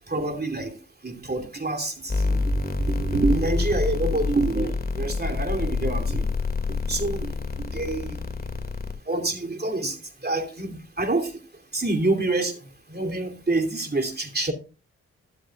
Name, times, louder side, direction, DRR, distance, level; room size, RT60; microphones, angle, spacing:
voice 1, 0.1-0.8 1.0-6.3 6.7-8.2 9.1-10.0 10.2-11.3 11.7-12.6 12.9-14.5, right 2 dB, 35° right, 5 dB, 2.9 m, -27 dB
sound 1, 2.1-8.9, left 4 dB, 30° left, 2.2 m, -27 dB
13.0 x 12.0 x 2.4 m, 0.32 s
supercardioid pair, 45°, 30 cm